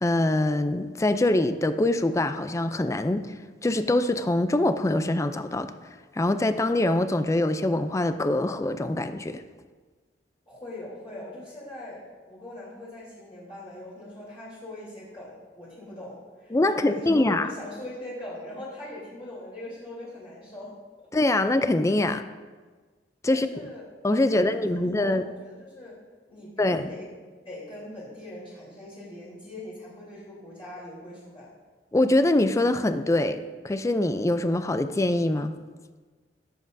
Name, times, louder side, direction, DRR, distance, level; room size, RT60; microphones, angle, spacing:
voice 1, 0.0-3.3 3.6-5.7 6.1-9.4 16.5-17.5 21.1-22.2 23.2-23.7 24.0-25.2 26.6-26.9 31.9-33.4 33.6-35.5, left 1 dB, 20° left, 10 dB, 0.4 m, -24 dB
voice 2, 10.5-20.7 23.3-23.9 24.2-26.0 26.3-27.1 27.4-31.5, left 1 dB, 35° left, -9 dB, 3.3 m, -41 dB
18.0 x 7.5 x 2.6 m, 1.4 s
head